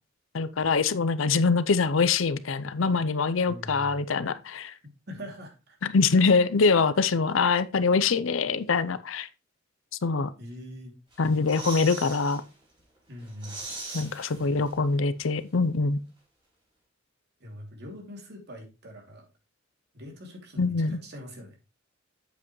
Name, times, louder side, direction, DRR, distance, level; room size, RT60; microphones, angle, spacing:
voice 1, 0.3-4.7 5.9-9.3 10.0-10.3 11.2-12.4 13.9-16.0 20.6-21.0, left 4 dB, 70° left, 0.6 m, -24 dB
voice 2, 3.5-4.0 5.1-5.8 6.1-6.2 10.4-11.0 13.1-13.7 17.4-19.3 19.9-21.6, equal, 55° right, 2.7 m, -43 dB
sound 1, 11.1-12.4 12.8-12.9 13.2-15.0 15.2-15.3, right 3 dB, 25° right, 5.0 m, -40 dB
8.2 x 7.6 x 3.1 m
head